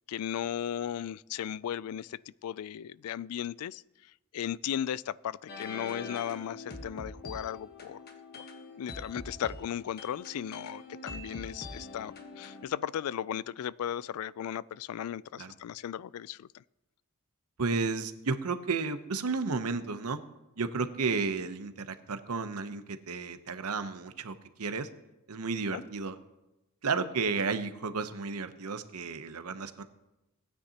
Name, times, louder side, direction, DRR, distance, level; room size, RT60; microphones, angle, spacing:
voice 1, 0.1-8.0 8.3-8.4 8.8-16.6 25.7-25.8, left 9 dB, 70° left, 19 dB, 0.3 m, -36 dB
sound 1, 5.5-12.7, left 2 dB, 45° left, 1.3 m, -44 dB
voice 2, 17.6-20.2 20.6-24.9 25.3-26.2 26.8-29.8, right 4 dB, 80° right, 10 dB, 0.8 m, -32 dB
17.5 x 9.7 x 2.9 m, 0.97 s
head